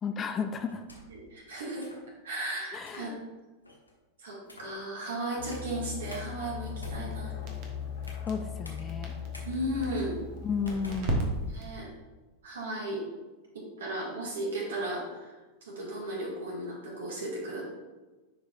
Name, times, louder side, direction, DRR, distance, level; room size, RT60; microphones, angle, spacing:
voice 1, 0.0-0.8 2.7-3.2 8.3-9.1 10.4-11.3, left 5 dB, 25° left, 8 dB, 0.5 m, -33 dB
sound 1, 0.7-1.3 1.8-2.1 2.8-3.1 3.6-3.9 4.4-4.8 5.5-5.7 6.1-6.2 6.7-8.3 8.6-8.8 9.3-9.5 10.0-10.1 10.6-11.7, left 2 dB, 85° left, 1.1 m, -48 dB
voice 2, 1.1-1.9 2.2-3.1 4.2-7.3 9.4-10.2 11.5-11.9 12.4-13.1 13.5-15.3 15.6-17.6, right 1 dB, 65° right, -3 dB, 2.2 m, -35 dB
sound 2, 5.4-11.1, left 8 dB, 55° left, 1.4 m, -39 dB
Crackle, 6.5-11.8, right 1 dB, 45° right, 1.3 m, -37 dB
10.0 x 4.8 x 2.6 m, 1.2 s
figure-of-eight pair, 90°, 0 cm